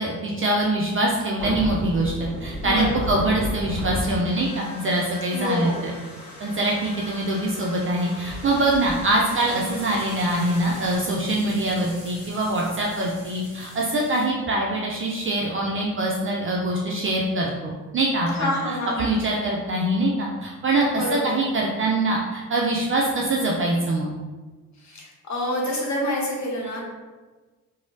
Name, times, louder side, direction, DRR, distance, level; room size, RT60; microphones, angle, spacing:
voice 1, 0.0-5.9 6.4-18.5 19.0-24.1, right 1 dB, 30° right, -2 dB, 0.4 m, -24 dB
sound 1, 1.4-11.0, left 1 dB, ahead, 1.3 m, -35 dB
voice 2, 2.6-3.2 5.3-5.9 18.3-19.2 20.9-21.3 24.8-26.8, left 1 dB, 35° left, -3 dB, 1.0 m, -28 dB
sound 2, 9.2-14.2, left 1 dB, 90° left, 0.7 m, -44 dB
3.0 x 2.1 x 2.6 m, 1.3 s
hypercardioid pair, 45°, 47 cm